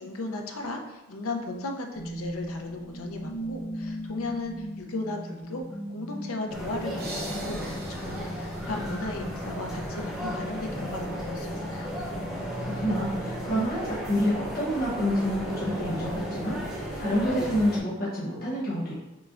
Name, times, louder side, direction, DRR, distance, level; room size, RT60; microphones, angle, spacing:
voice 1, 0.0-5.6 5.9-11.9, left 2 dB, 80° left, 3 dB, 0.7 m, -36 dB
sound 1, 1.9-13.9, equal, 65° left, 1.4 m, -39 dB
sound 2, 6.5-17.8, equal, 5° right, 0.9 m, -34 dB
sound 3, 7.0-9.8, right 2 dB, 50° right, 0.8 m, -44 dB
voice 2, 12.6-18.9, equal, 45° left, -7 dB, 1.0 m, -28 dB
6.1 x 3.2 x 2.5 m, 1.0 s
head